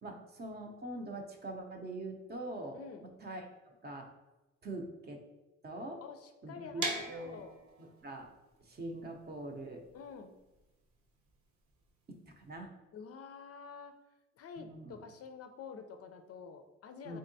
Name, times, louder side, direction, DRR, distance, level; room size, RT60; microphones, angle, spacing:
voice 1, 0.0-4.1 4.6-5.2 5.6-6.0 6.4-7.4 7.8-8.3 8.6-9.9 12.1-12.7 14.6-15.0 17.0-17.2, right 2 dB, 35° right, 2 dB, 0.6 m, -43 dB
voice 2, 2.7-3.1 6.0-7.5 9.9-10.3 12.9-13.9 14.4-17.2, left 6 dB, 50° left, 6 dB, 0.4 m, -48 dB
sound 1, 6.8-12.6, right 3 dB, 70° right, 0.9 m, -43 dB
3.6 x 3.3 x 2.6 m, 1.1 s
cardioid pair, 90°, 30 cm